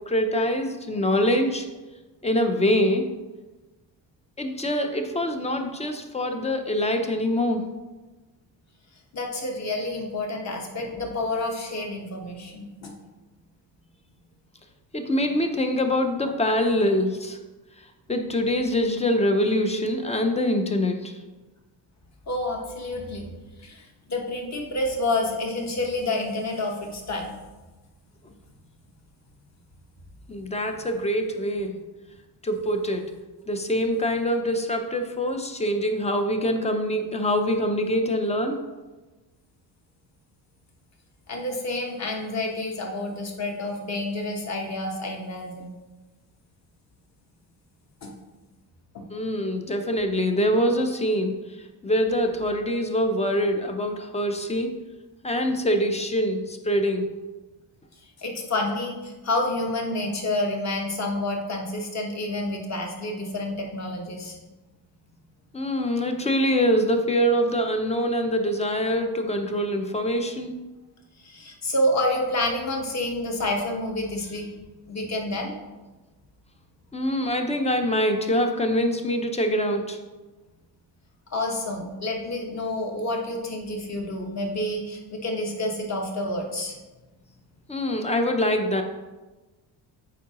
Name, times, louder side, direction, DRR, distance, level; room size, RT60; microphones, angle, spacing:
voice 1, 0.1-1.7 2.2-3.0 4.4-7.6 14.9-17.4 18.1-21.2 30.3-31.8 32.4-33.1 33.5-38.6 49.1-51.4 51.8-54.7 55.2-57.1 65.5-70.6 76.9-80.0 87.7-88.8, equal, 15° left, 5 dB, 0.4 m, -24 dB
voice 2, 9.1-12.9 22.3-23.3 23.6-27.3 41.3-45.7 48.0-48.1 48.9-49.1 58.2-64.4 71.2-74.5 74.9-75.5 81.3-86.8, left 1 dB, 40° left, 1 dB, 1.1 m, -29 dB
8.3 x 4.6 x 2.9 m, 1.2 s
cardioid pair, 155°, 42 cm